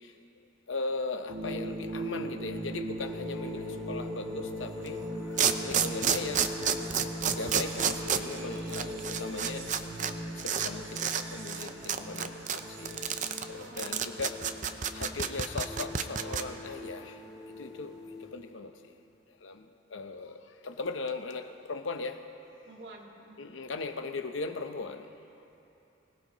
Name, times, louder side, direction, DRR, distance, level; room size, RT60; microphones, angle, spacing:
voice 1, 0.7-5.0 5.6-6.5 7.3-9.7 10.4-13.0 13.5-14.4 14.9-17.1 17.6-17.9 18.3-18.7 19.4-19.6 19.9-20.4 20.6-22.2 23.4-25.1, left 3 dB, 85° left, 7 dB, 0.8 m, -38 dB
sound 1, 1.3-13.6, equal, 85° right, 1.4 m, -39 dB
sound 2, 3.0-18.3, left 1 dB, ahead, 3.3 m, -45 dB
sound 3, 4.8-4.9 5.4-10.1 10.4-10.7 10.9-11.2 11.5-16.4, right 8 dB, 40° right, 0.6 m, -29 dB
voice 2, 8.6-9.1 13.5-14.0 22.7-23.4, right 2 dB, 60° right, -2 dB, 2.1 m, -50 dB
24.5 x 17.5 x 3.1 m, 3.0 s
head